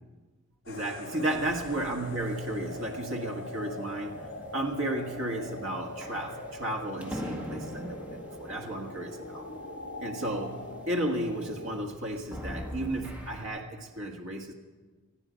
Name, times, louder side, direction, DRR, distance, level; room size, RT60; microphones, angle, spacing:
sound 1, 0.7-11.8, left 1 dB, 65° left, 3.7 m, -42 dB
voice 1, 0.7-4.2 4.5-9.5 10.0-10.6 10.9-14.5, right 1 dB, 60° right, 2 dB, 1.6 m, -33 dB
sound 2, 1.3-13.4, equal, 5° right, 1.6 m, -45 dB
20.5 x 13.5 x 5.1 m, 1.3 s
head